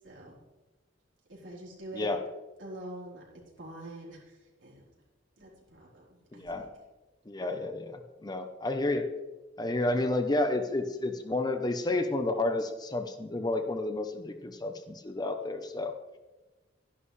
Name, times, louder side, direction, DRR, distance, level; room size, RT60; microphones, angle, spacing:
voice 1, 0.0-0.4 1.3-2.1 2.6-3.2 3.6-4.9 5.4-6.7, right 1 dB, 80° right, -4 dB, 3.9 m, -45 dB
voice 2, 6.3-6.7 7.3-9.1 9.6-15.9, left 2 dB, 20° left, 7 dB, 0.7 m, -31 dB
13.5 x 11.0 x 3.3 m, 1.2 s
head